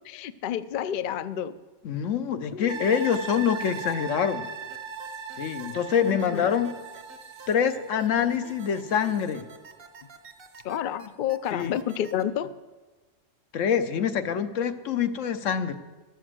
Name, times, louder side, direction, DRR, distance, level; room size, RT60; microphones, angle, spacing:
voice 1, 0.0-1.5 2.5-2.8 6.1-6.5 10.6-12.5, left 10 dB, 60° left, 13 dB, 0.5 m, -30 dB
voice 2, 1.8-4.5 5.4-6.7 7.5-9.5 11.5-11.7 13.5-15.8, left 7 dB, 80° left, 9 dB, 1.1 m, -25 dB
sound 1, 2.7-10.0 10.4-10.5, right 5 dB, 75° right, 1.4 m, -39 dB
sound 2, 4.7-12.2, right 4 dB, 50° right, 1.1 m, -48 dB
12.5 x 7.2 x 7.5 m, 1.3 s
omnidirectional pair, 1.3 m